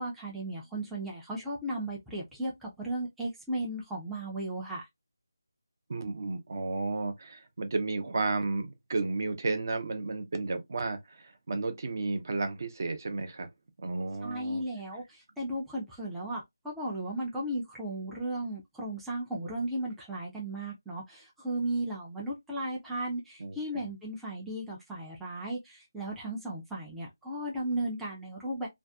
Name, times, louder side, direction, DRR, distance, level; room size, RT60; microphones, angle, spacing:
voice 1, 0.0-4.9 14.2-28.7, right 1 dB, ahead, 0.4 m, -35 dB
voice 2, 5.9-13.5 13.8-14.6 23.4-23.6, right 3 dB, 50° right, 0.6 m, -32 dB
2.5 x 2.3 x 2.2 m
figure-of-eight pair, 160°, 2 cm